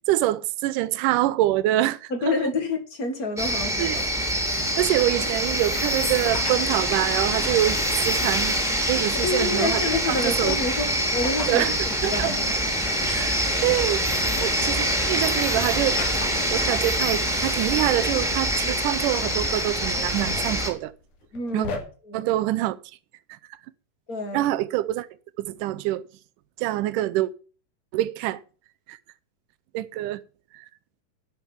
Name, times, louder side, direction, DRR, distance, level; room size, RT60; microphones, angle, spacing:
voice 1, 0.1-2.4 3.8-4.0 4.8-7.8 8.1-9.8 10.1-10.6 11.5-11.8 12.0-12.4 13.1-16.1 16.5-20.9 21.5-21.7 22.1-22.8 23.3-23.4 24.3-25.1 25.4-26.1 26.6-27.3 27.9-28.4 28.9-29.0 29.7-30.2 30.5-30.7, right 15 dB, 80° right, 2.1 m, -25 dB
voice 2, 2.1-4.0 9.1-11.7 12.1-12.6 21.3-21.7 22.1-22.3 24.1-24.4, left 3 dB, 40° left, 1.4 m, -28 dB
sound 1, 3.4-20.7, equal, ahead, 1.8 m, -25 dB
sound 2, 6.2-6.7 8.0-8.1 9.6-10.0 11.2-11.6 12.0-12.1 13.5-14.7 16.0-16.6 17.6-17.7 17.8-18.0 19.0-19.6 20.0-21.8, left 4 dB, 65° left, 3.5 m, -37 dB
11.0 x 6.3 x 7.1 m
omnidirectional pair, 3.9 m